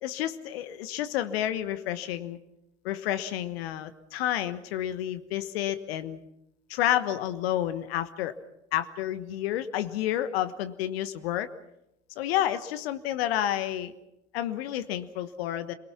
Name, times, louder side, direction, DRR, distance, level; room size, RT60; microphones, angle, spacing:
voice 1, 0.0-2.4 2.8-6.2 6.7-8.3 8.7-11.5 12.2-13.9 14.3-15.7, left 12 dB, 60° left, 12 dB, 1.3 m, -30 dB
27.5 x 22.5 x 6.0 m, 0.85 s
figure-of-eight pair, 65°, 34 cm